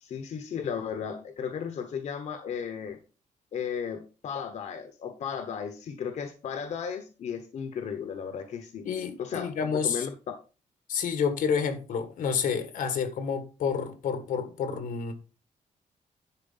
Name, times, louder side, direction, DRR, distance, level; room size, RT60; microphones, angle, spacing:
voice 1, 0.0-3.0 3.5-8.9 9.2-10.1, left 7 dB, 55° left, 1.1 m, -35 dB
voice 2, 8.9-10.1 10.9-15.1, left 6 dB, 80° left, 1.7 m, -29 dB
11.0 x 4.5 x 5.5 m
wide cardioid pair, 175°, 14 cm